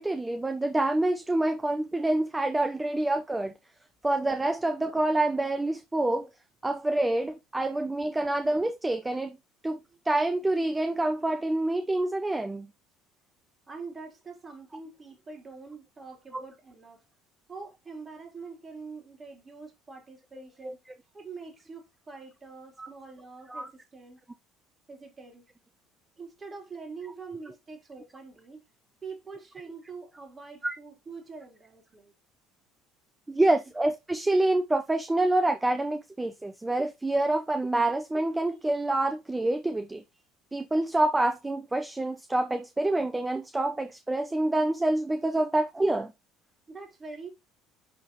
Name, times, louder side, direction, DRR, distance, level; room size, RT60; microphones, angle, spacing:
voice 1, 0.0-3.5 4.0-6.3 6.6-9.4 9.6-9.8 10.0-12.7 16.3-16.4 20.6-20.7 22.8-22.9 23.5-23.7 30.6-30.8 33.3-40.0 40.5-46.1, right 2 dB, 15° right, 0.7 m, -27 dB
voice 2, 13.7-17.0 17.5-20.8 21.1-24.2 24.9-25.5 26.2-28.6 29.0-32.1 46.7-47.3, right 4 dB, 30° right, 3.4 m, -44 dB
10.0 x 3.7 x 3.0 m
hypercardioid pair, 65°, 0 cm